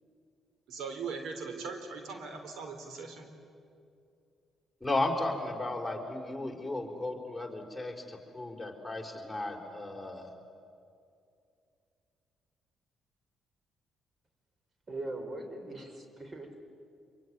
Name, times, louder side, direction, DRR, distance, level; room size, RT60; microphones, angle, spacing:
voice 1, 0.7-3.3, right 5 dB, 80° right, 6 dB, 3.5 m, -40 dB
voice 2, 4.8-10.4, left 2 dB, 5° left, 0 dB, 4.6 m, -35 dB
voice 3, 14.9-16.6, right 2 dB, 35° right, 6 dB, 4.6 m, -40 dB
26.5 x 23.0 x 9.7 m, 2.4 s
cardioid pair, 90°, 0 cm